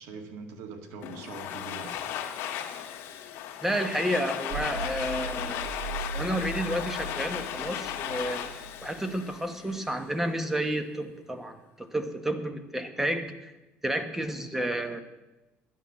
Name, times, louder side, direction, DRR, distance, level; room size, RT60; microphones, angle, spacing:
voice 1, 0.0-2.0, right 4 dB, 85° right, 6 dB, 2.0 m, -42 dB
Domestic sounds home sounds, 1.0-9.9, left 10 dB, 70° left, 1.5 m, -36 dB
voice 2, 3.6-5.7 6.1-8.5 8.8-13.5 13.8-15.0, right 1 dB, 5° right, 9 dB, 1.1 m, -31 dB
sound 1, 4.5-10.0, right 2 dB, 65° right, 2.3 m, -39 dB
11.5 x 9.7 x 7.2 m, 1.0 s
cardioid pair, 140°, 4 cm